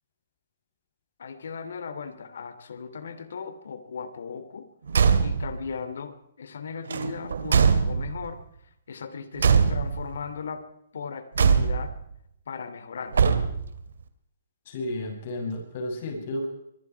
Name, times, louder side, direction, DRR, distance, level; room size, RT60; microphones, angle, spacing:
voice 1, 1.2-4.7 5.2-8.4 8.9-10.7 10.9-12.0 12.5-13.2, left 5 dB, 75° left, 11 dB, 3.0 m, -37 dB
Car / Truck / Slam, 4.9-5.6 6.9-8.3 9.4-10.2 11.4-12.0 13.1-13.8, right 6 dB, 85° right, 2.6 m, -22 dB
voice 2, 14.7-16.5, left 1 dB, 40° left, 2 dB, 7.6 m, -32 dB
25.0 x 22.5 x 4.7 m, 0.75 s
hypercardioid pair, 165°, 0 cm